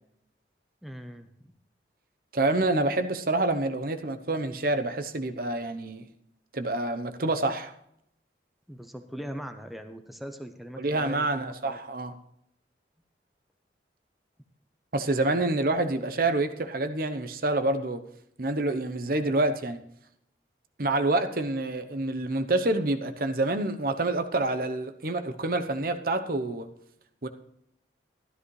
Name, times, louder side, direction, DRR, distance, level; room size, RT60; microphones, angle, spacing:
voice 1, 0.8-1.3 8.7-11.8, equal, ahead, 6 dB, 0.8 m, -40 dB
voice 2, 2.3-6.1 6.5-7.7 10.8-12.1 14.9-18.0 18.4-19.8 20.8-26.7 27.2-27.3, right 2 dB, 55° right, 8 dB, 0.8 m, -27 dB
13.0 x 12.5 x 3.2 m, 0.74 s
head